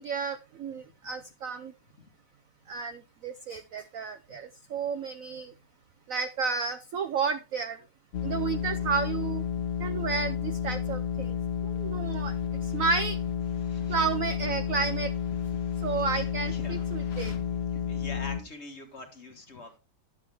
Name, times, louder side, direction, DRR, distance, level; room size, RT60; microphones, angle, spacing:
voice 1, 0.0-1.7 2.7-5.5 6.1-7.8 8.2-9.4 9.8-11.3 11.6-12.3 12.7-13.2 13.9-15.1 15.8-17.3, right 5 dB, 75° right, 10 dB, 0.7 m, -31 dB
sound 1, 8.1-18.4, left 8 dB, 55° left, 0.7 m, -31 dB
voice 2, 13.5-14.0 16.0-19.8, left 3 dB, 35° left, 5 dB, 1.5 m, -46 dB
10.5 x 7.6 x 3.4 m, 0.27 s
omnidirectional pair, 2.3 m